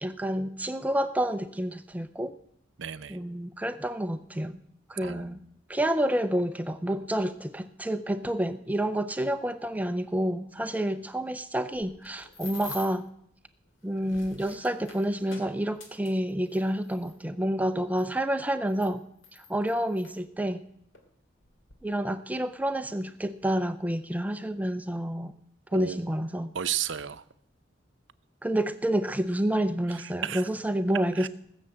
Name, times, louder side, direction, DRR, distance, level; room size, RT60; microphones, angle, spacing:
voice 1, 0.0-2.3 3.1-4.6 4.9-5.4 5.7-13.1 13.8-19.0 19.5-20.6 21.8-25.3 25.7-26.5 28.4-31.3, right 1 dB, 10° right, 11 dB, 0.5 m, -29 dB
voice 2, 2.8-3.2 5.0-5.4 25.7-26.0 26.5-27.2 29.9-30.5 31.1-31.3, right 9 dB, 75° right, 12 dB, 0.7 m, -34 dB
sound 1, 11.7-13.1 13.8-17.2 18.0-18.1 18.7-20.2 20.9-21.1 21.4-21.8, left 4 dB, 90° left, 2.4 m, -46 dB
18.0 x 6.9 x 7.8 m, 0.71 s
head